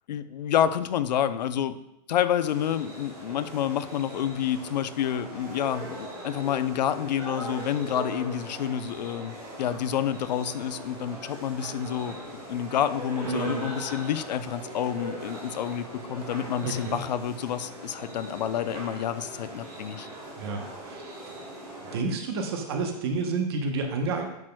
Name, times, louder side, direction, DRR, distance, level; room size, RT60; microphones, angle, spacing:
voice 1, 0.1-1.8 2.1-12.2 12.5-20.1, left 9 dB, 90° left, 13 dB, 0.6 m, -29 dB
sound 1, 2.4-22.0, right 1 dB, 15° right, 2.6 m, -40 dB
voice 2, 13.2-13.7 16.6-17.0 20.4-21.0 21.9-24.3, right 3 dB, 35° right, 4 dB, 0.9 m, -30 dB
10.5 x 6.1 x 2.2 m, 0.85 s
supercardioid pair, 180°, 21 cm